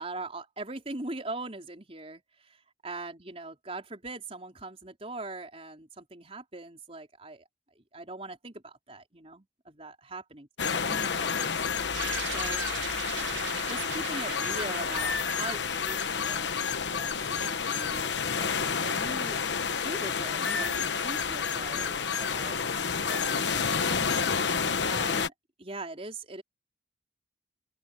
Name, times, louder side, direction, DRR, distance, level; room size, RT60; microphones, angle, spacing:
voice 1, 0.0-7.4 7.7-10.5 10.8-11.6 12.2-12.7 13.6-16.5 16.9-18.6 18.8-19.4 19.8-22.7 22.9-24.5 24.8-25.3 25.6-26.4, right 2 dB, 30° right, 4.8 m, -41 dB
sound 1, 10.6-25.3, left 6 dB, 70° left, 1.1 m, -29 dB
sound 2, 11.9-16.6, right 9 dB, 75° right, 0.8 m, -40 dB
open air
head